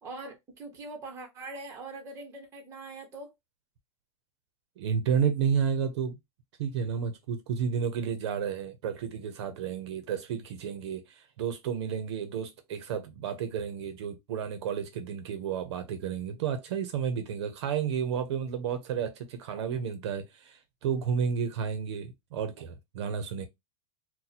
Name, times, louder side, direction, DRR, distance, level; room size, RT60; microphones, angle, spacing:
voice 1, 0.0-3.3, right 2 dB, 15° right, 1.0 m, -42 dB
voice 2, 4.8-6.2 6.6-23.5, right 7 dB, 60° right, 0.7 m, -31 dB
2.8 x 2.2 x 4.0 m
supercardioid pair, 170°, 16 cm